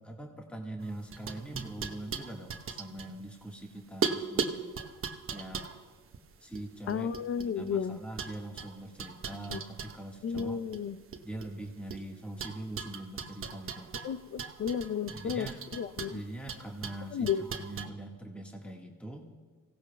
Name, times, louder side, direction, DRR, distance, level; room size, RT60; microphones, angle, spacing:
voice 1, 0.0-4.7 5.3-5.7 6.4-7.1 7.4-10.6 11.2-13.9 15.1-15.6 16.1-19.3, right 1 dB, 5° left, 1 dB, 1.6 m, -42 dB
sound 1, 0.8-3.6 4.0-7.7 8.2-10.5 10.7-12.0 12.4-17.9, right 6 dB, 45° right, 1.0 m, -38 dB
voice 2, 6.9-8.0 9.3-9.6 10.2-11.0 14.0-15.5 15.7-16.2 17.1-17.4, left 7 dB, 50° left, 14 dB, 0.6 m, -33 dB
26.0 x 16.5 x 2.3 m, 1.4 s
cardioid pair, 90°, 30 cm